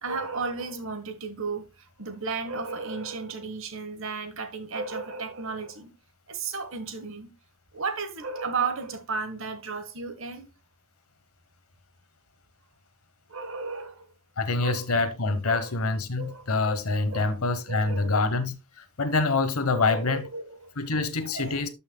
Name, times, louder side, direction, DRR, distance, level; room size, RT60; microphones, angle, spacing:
voice 1, 0.0-5.9 6.3-7.3 7.7-10.5 13.3-14.1 14.6-14.9 15.4-15.7 16.2-16.6 17.1-17.2 17.7-18.3 19.7-20.7 21.2-21.7, right 4 dB, 60° right, 1.2 m, -34 dB
voice 2, 14.4-18.5 19.0-20.3 20.8-21.7, left 3 dB, 75° left, 1.1 m, -26 dB
12.0 x 5.6 x 2.2 m
head